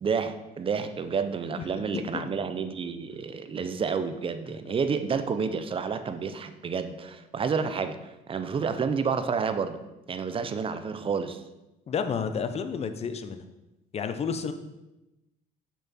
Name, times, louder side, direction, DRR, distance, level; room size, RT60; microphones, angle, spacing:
voice 1, 0.0-8.0 8.3-9.8 10.1-11.4, right 5 dB, 30° right, 10 dB, 0.6 m, -30 dB
voice 2, 1.9-2.3 11.9-13.4 13.9-14.5, left 6 dB, 40° left, 9 dB, 0.7 m, -31 dB
7.1 x 5.9 x 4.2 m, 0.99 s
cardioid pair, 110°, 17 cm